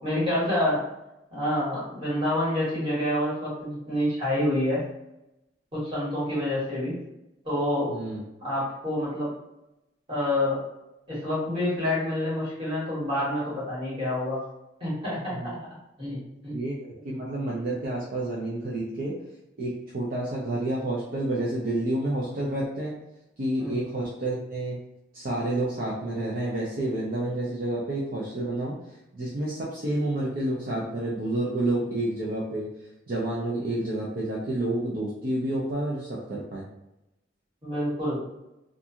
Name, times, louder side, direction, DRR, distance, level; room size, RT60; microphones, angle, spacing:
voice 1, 0.0-0.8 1.3-4.8 5.7-6.9 7.4-7.9 8.4-9.3 10.1-10.6 11.1-14.4 14.8-15.6 16.0-16.2 16.4-16.6 23.6-23.7 37.6-38.2, left 1 dB, 30° right, -8 dB, 1.5 m, -27 dB
voice 2, 7.9-8.2 15.3-15.5 16.5-19.2 19.6-22.9 23.4-24.8 25.1-28.8 29.1-32.7 33.1-36.6, right 1 dB, 50° right, -6 dB, 0.5 m, -29 dB
2.5 x 2.4 x 2.7 m, 0.91 s
head